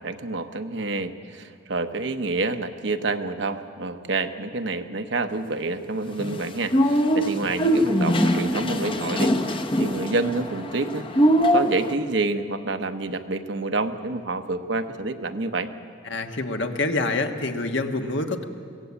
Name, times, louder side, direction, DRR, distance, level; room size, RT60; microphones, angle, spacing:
voice 1, 0.0-15.7, right 3 dB, 60° right, 8 dB, 1.0 m, -28 dB
sound 1, 6.2-11.9, equal, 25° left, 0.9 m, -22 dB
voice 2, 16.0-18.4, left 2 dB, 65° left, 4 dB, 1.4 m, -26 dB
22.0 x 17.0 x 8.5 m, 2.3 s
head